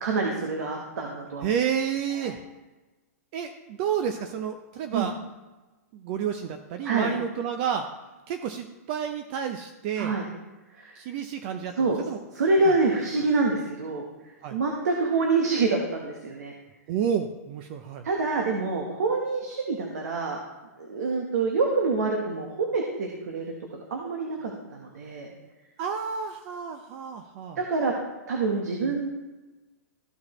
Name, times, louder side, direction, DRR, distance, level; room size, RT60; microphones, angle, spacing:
voice 1, 0.0-1.5 2.3-2.4 4.9-5.1 6.8-7.1 10.0-10.2 10.7-10.9 11.8-12.0 12.3-14.0 14.5-16.5 18.0-20.4 20.8-23.5 23.9-25.3 27.6-27.9 28.3-29.1, right 3 dB, 80° right, 1 dB, 1.3 m, -26 dB
voice 2, 1.4-2.4 3.3-5.1 5.9-7.9 8.3-10.2 11.0-12.2 12.7-12.8 14.4-14.6 16.9-18.0 25.8-27.6, right 8 dB, 40° right, 7 dB, 0.6 m, -30 dB
14.0 x 4.7 x 3.2 m, 1.2 s
hypercardioid pair, 145°, 9 cm